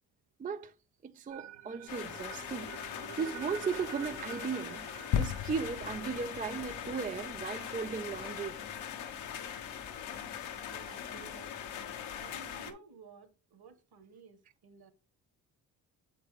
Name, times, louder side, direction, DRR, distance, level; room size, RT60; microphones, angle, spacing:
voice 1, 0.4-0.7 1.0-2.7 3.2-4.9 5.2-8.6 9.4-9.5, right 5 dB, 20° right, 0.3 m, -36 dB
sound 1, 1.3-7.4, right 10 dB, 70° right, 0.8 m, -49 dB
sound 2, 1.9-12.7, left 8 dB, 80° left, 1.1 m, -42 dB
sound 3, 5.1-8.7 9.3-9.4, left 8 dB, 55° left, 0.7 m, -37 dB
voice 2, 10.7-11.9 12.2-14.9, right 5 dB, 55° right, 1.5 m, -55 dB
7.6 x 4.6 x 3.4 m
supercardioid pair, 55°, 46 cm